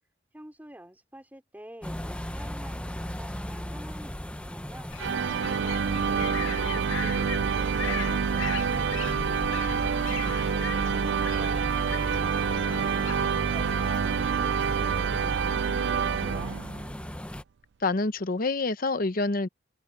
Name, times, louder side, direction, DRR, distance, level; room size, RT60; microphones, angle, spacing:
voice 1, 0.3-10.0, right 1 dB, 10° right, 4.0 m, -48 dB
sound 1, 1.8-17.4, equal, 5° left, 0.8 m, -38 dB
sound 2, 4.9-15.4, left 7 dB, 80° left, 0.7 m, -40 dB
sound 3, 5.0-16.9, right 6 dB, 65° right, 0.4 m, -27 dB
voice 2, 17.8-19.5, left 3 dB, 45° left, 0.9 m, -27 dB
open air
head